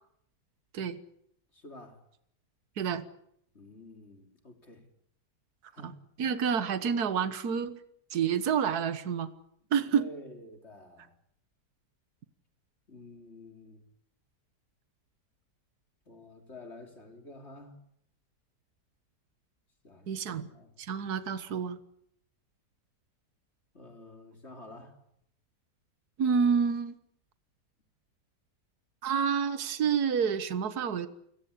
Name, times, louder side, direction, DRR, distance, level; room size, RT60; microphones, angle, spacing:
voice 1, 1.5-2.0 3.5-4.9 5.7-6.0 9.9-11.2 12.9-13.8 16.1-17.8 19.8-20.7 23.7-25.0, left 1 dB, 40° left, 5 dB, 3.7 m, -49 dB
voice 2, 6.2-7.8 8.1-9.3 9.7-10.1 20.1-20.5 20.8-21.8 26.2-27.0 29.0-31.1, right 7 dB, 65° right, 13 dB, 1.8 m, -28 dB
28.5 x 18.0 x 8.5 m, 0.72 s
omnidirectional pair, 1.8 m